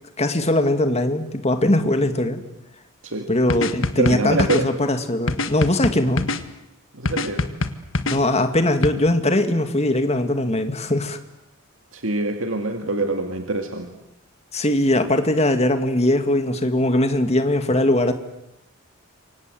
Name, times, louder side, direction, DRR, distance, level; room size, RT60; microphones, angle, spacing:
voice 1, 0.2-2.4 3.3-6.3 8.1-11.2 14.5-18.1, left 1 dB, 30° left, 8 dB, 2.2 m, -20 dB
sound 1, 3.5-4.6 5.3-6.4 7.1-8.2 8.8-8.9, left 2 dB, 60° left, 1.7 m, -24 dB
voice 2, 4.0-4.7 6.9-7.5 11.9-13.9, right 2 dB, 65° right, 5 dB, 2.2 m, -25 dB
28.5 x 25.0 x 7.9 m, 0.83 s
head